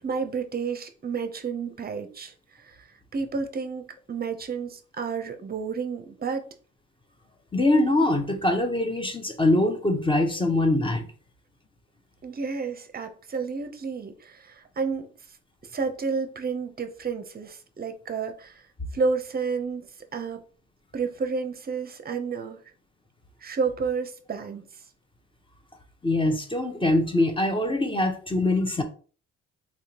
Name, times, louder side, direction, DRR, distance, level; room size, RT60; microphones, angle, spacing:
voice 1, 0.0-2.9 3.1-6.5 12.2-15.1 15.7-18.6 18.9-20.4 20.9-22.6 23.4-24.7, right 5 dB, 30° right, 0.6 m, -31 dB
voice 2, 7.5-11.1 22.1-22.2 26.0-28.8, left 1 dB, 15° left, 0.7 m, -23 dB
3.5 x 2.9 x 2.9 m
cardioid pair, 90°, 30 cm